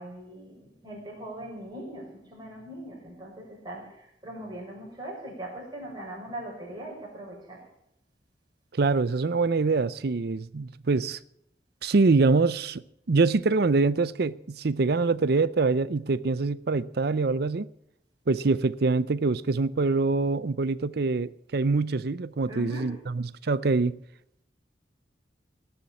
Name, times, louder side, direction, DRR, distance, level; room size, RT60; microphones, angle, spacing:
voice 1, 0.0-7.7 22.5-23.0, right 1 dB, 25° right, 5.8 m, -40 dB
voice 2, 8.7-11.2 11.8-12.8 13.1-17.7 18.3-24.0, right 3 dB, 60° right, 0.6 m, -24 dB
18.0 x 7.2 x 8.6 m
head